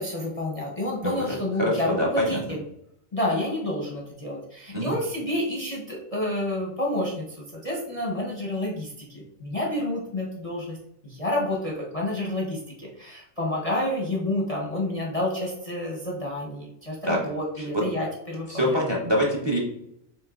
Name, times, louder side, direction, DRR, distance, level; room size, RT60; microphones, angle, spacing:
voice 1, 0.0-2.6 3.1-10.8 11.0-18.8, left 1 dB, 35° left, -2 dB, 0.7 m, -29 dB
voice 2, 1.0-2.4 4.7-5.0 17.0-17.2 17.6-17.8 18.5-19.6, equal, 25° right, -1 dB, 0.7 m, -25 dB
5.9 x 3.7 x 2.4 m, 0.77 s
omnidirectional pair, 1.4 m